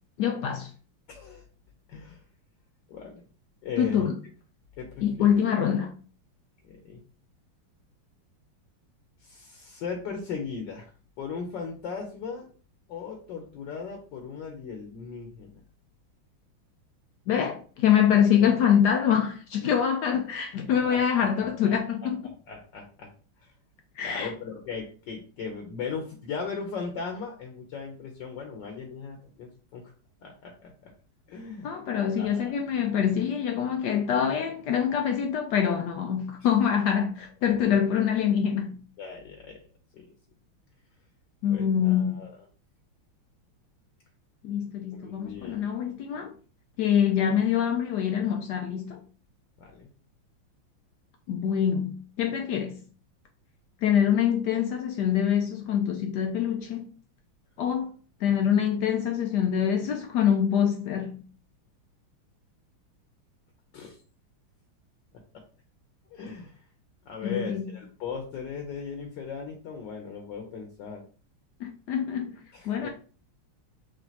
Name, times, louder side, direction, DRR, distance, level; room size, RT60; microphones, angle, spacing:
voice 1, 0.2-0.7 3.8-4.2 5.0-5.9 17.3-22.3 24.0-24.3 31.6-38.8 41.4-42.2 44.4-46.3 46.8-49.0 51.3-52.8 53.8-56.9 57.6-57.9 58.2-61.2 67.2-67.7 71.6-72.9, left 8 dB, 80° left, 0.9 m, -25 dB
voice 2, 1.1-1.4 1.9-2.2 2.9-3.2 3.6-4.0 4.8-5.3 6.6-7.0 9.2-10.9 11.2-12.5 12.9-15.6 20.8-21.0 21.4-22.1 22.5-23.1 23.4-23.5 24.0-29.8 30.2-30.9 31.3-31.7 32.2-32.6 39.0-39.6 39.9-40.1 41.5-42.4 44.9-45.7 49.6-49.9 63.7-64.0 66.1-66.6 67.0-71.0 72.5-72.9, left 5 dB, 65° left, 1.3 m, -38 dB
5.1 x 3.3 x 2.8 m
omnidirectional pair, 2.3 m